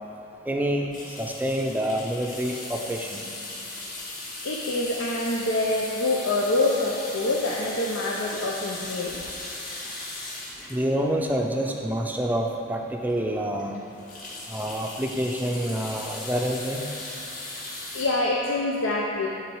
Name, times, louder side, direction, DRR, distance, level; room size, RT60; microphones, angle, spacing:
voice 1, 0.5-0.9 1.2-3.2 10.7-13.8 14.5-16.9, right 1 dB, 10° right, 1 dB, 0.4 m, -27 dB
sound 1, 0.9-12.2 12.7-12.8 13.0-13.2 13.5-18.0, left 2 dB, 40° left, 1.8 m, -38 dB
voice 2, 4.4-9.2 17.9-19.3, left 2 dB, 90° left, -3 dB, 0.7 m, -26 dB
10.0 x 4.1 x 4.7 m, 3.0 s
head